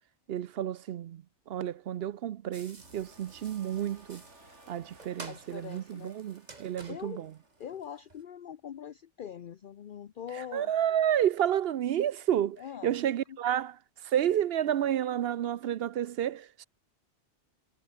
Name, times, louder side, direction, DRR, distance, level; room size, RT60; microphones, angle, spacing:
voice 1, 0.3-4.2 4.7-7.3 10.3-16.7, right 10 dB, 65° right, 0.8 m, -30 dB
sound 1, 2.5-8.2, right 3 dB, 40° right, 2.1 m, -51 dB
sound 2, 2.7-7.9, right 1 dB, 90° right, 7.2 m, -58 dB
voice 2, 5.3-6.1 6.9-7.2 7.6-10.7 12.6-12.9 13.3-13.4, left 9 dB, 55° left, 0.8 m, -42 dB
omnidirectional pair, 1.2 m